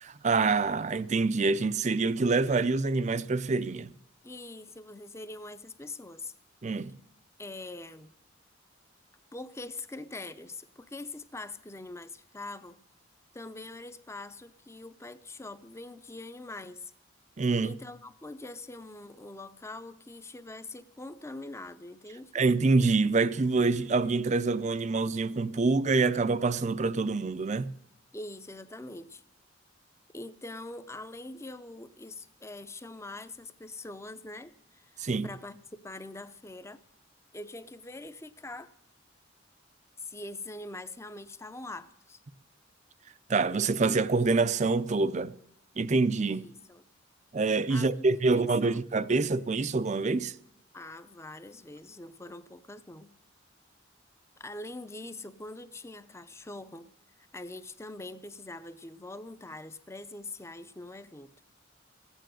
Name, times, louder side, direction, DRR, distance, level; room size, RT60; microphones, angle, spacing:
voice 1, 0.0-3.9 6.6-6.9 17.4-17.7 22.3-27.7 35.0-35.3 43.3-45.3 45.8-46.5 47.3-50.3, right 3 dB, 35° right, 0.5 m, -26 dB
voice 2, 4.2-6.3 7.4-8.1 9.3-12.8 13.3-16.9 17.6-22.3 28.1-29.2 30.1-36.8 37.3-38.7 40.0-42.2 46.3-46.8 47.7-48.8 50.7-53.1 54.4-56.9 57.3-61.3, left 2 dB, 15° left, 0.6 m, -43 dB
15.0 x 9.2 x 7.7 m
head